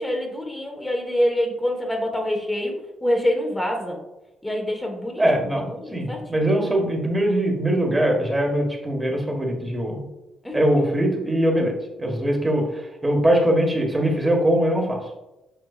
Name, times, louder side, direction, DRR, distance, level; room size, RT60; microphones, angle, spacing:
voice 1, 0.0-2.7 3.0-4.0 4.4-5.2 5.7-6.4 10.4-10.6, equal, 10° left, 2 dB, 1.4 m, -25 dB
voice 2, 5.2-10.0 10.5-15.0, right 1 dB, 15° right, 2 dB, 1.6 m, -22 dB
8.1 x 5.3 x 2.5 m, 0.98 s
cardioid pair, 90°, 0 cm